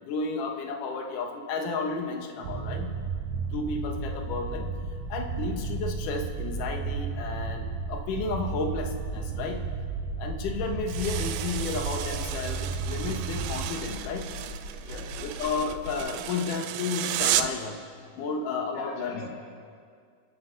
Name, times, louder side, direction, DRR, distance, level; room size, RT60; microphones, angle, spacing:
voice 1, 0.0-3.0 3.3-4.7 5.1-9.6 10.2-14.3 15.2-17.8 18.1-19.3, left 4 dB, 65° left, 4 dB, 2.3 m, -32 dB
Epic Rumble, 2.4-13.7, right 6 dB, 70° right, 2.7 m, -34 dB
sound 1, 2.9-16.0, left 2 dB, 80° left, 5.8 m, -40 dB
sound 2, 10.9-17.7, right 11 dB, 90° right, 3.0 m, -33 dB
voice 2, 14.8-15.3 18.7-19.3, left 2 dB, 35° left, -4 dB, 2.7 m, -42 dB
29.5 x 11.5 x 3.9 m, 2.2 s
omnidirectional pair, 5.0 m